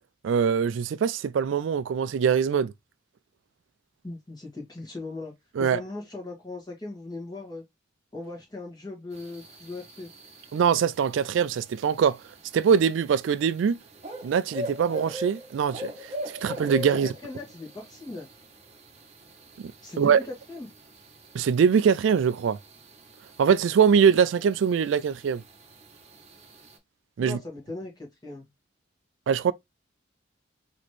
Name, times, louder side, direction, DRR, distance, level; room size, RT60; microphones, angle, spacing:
voice 1, 0.2-2.7 5.6-5.8 10.5-12.2 12.5-13.7 14.2-17.1 20.0-20.2 21.3-22.6 23.4-25.4 27.2-27.4 29.3-29.5, right 7 dB, 75° right, 0.3 m, -23 dB
voice 2, 4.0-5.3 5.6-7.6 8.1-10.1 16.9-18.3 19.8-20.7 27.2-28.5, left 2 dB, 20° left, 1.7 m, -38 dB
sound 1, 9.1-26.8, left 1 dB, 35° right, 0.9 m, -43 dB
4.2 x 3.0 x 3.1 m
head